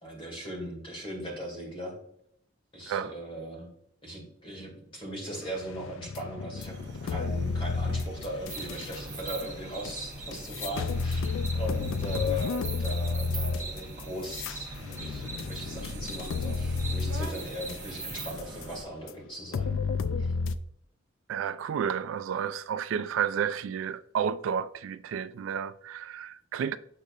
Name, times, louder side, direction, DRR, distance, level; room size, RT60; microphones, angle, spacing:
voice 1, 0.0-2.0 2.7-3.7 4.0-6.7 7.0-19.8 20.2-20.3, equal, 25° left, 2.1 m, -38 dB
sound 1, 5.7-9.0 9.8-9.9 10.3-18.7 19.1-19.2 19.5-20.6, left 4 dB, 75° left, 0.4 m, -31 dB
sound 2, 6.6-18.8, right 1 dB, 60° right, 0.9 m, -44 dB
sound 3, 8.5-18.3, right 4 dB, 10° right, 0.9 m, -42 dB
voice 2, 21.3-26.8, right 8 dB, 80° right, 0.3 m, -31 dB
6.7 x 6.5 x 2.4 m
head